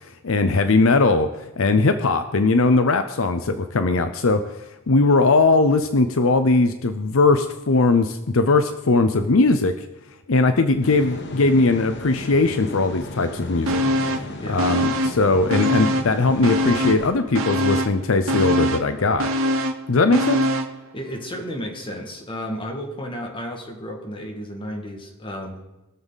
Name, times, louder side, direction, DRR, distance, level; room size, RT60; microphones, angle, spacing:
voice 1, 0.2-1.3 1.6-4.4 4.9-9.8 10.3-13.8 14.5-19.3 19.9-20.4, left 3 dB, 70° left, 9 dB, 0.7 m, -19 dB
sound 1, 10.8-17.1, left 2 dB, 55° left, 1.2 m, -35 dB
sound 2, 13.7-14.3 14.6-16.1 16.4-20.8 21.1-21.2, equal, 75° right, 1.2 m, -23 dB
voice 2, 20.9-25.6, equal, 25° left, 1 dB, 2.1 m, -32 dB
21.5 x 7.3 x 4.0 m, 0.99 s
head